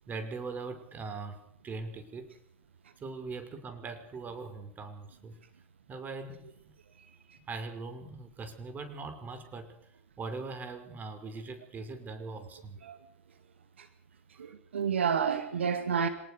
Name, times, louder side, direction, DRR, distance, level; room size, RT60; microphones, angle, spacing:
voice 1, 0.1-2.3 3.0-5.4 5.9-6.7 7.5-9.8 10.2-12.8 14.3-14.5, right 3 dB, 30° right, 5.9 m, -41 dB
voice 2, 14.4-16.1, right 7 dB, 80° right, 2.2 m, -29 dB
27.0 x 19.5 x 6.9 m
figure-of-eight pair, 85°, 6 cm